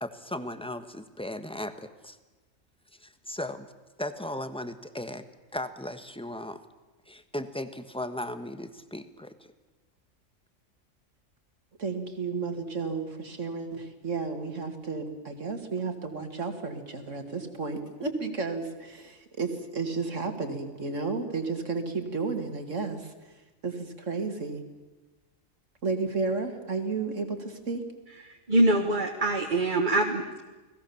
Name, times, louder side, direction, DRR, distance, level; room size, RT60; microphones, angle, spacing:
voice 1, 0.0-2.2 3.0-3.7 4.0-5.2 5.5-6.6 7.1-9.3, left 1 dB, 5° left, 10 dB, 1.3 m, -36 dB
voice 2, 11.8-23.1 23.6-24.6 25.8-27.8, right 4 dB, 65° right, 6 dB, 2.7 m, -32 dB
voice 3, 28.2-30.4, right 1 dB, 35° right, 2 dB, 1.8 m, -24 dB
30.0 x 20.0 x 7.2 m, 1.2 s
omnidirectional pair, 1.4 m